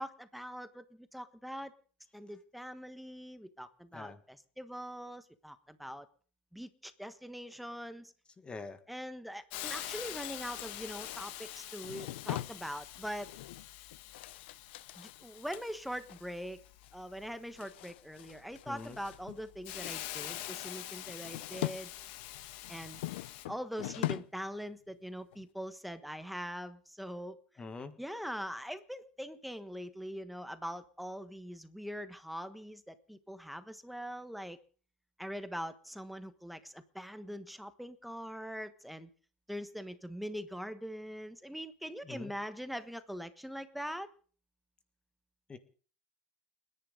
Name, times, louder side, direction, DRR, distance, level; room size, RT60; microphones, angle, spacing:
voice 1, 0.0-1.7 2.1-6.1 6.5-8.1 8.9-13.3 15.0-16.6 16.9-21.9 22.7-23.0 23.5-27.4 28.0-34.6 35.2-39.1 39.5-44.1, equal, ahead, 10 dB, 1.3 m, -42 dB
voice 2, 8.4-8.8 18.7-19.0 27.6-28.0 42.0-42.3 45.5-45.6, left 3 dB, 15° left, 10 dB, 1.6 m, -44 dB
Hiss, 9.5-23.4, left 14 dB, 65° left, 1.9 m, -46 dB
sound 1, 9.6-16.3 16.6-16.9 17.2-19.4 19.7-21.8 22.2-24.4 24.7-24.9 25.3-25.4, left 16 dB, 85° left, 0.7 m, -43 dB
30.0 x 10.5 x 3.9 m, 0.42 s
supercardioid pair, 130°, 6 cm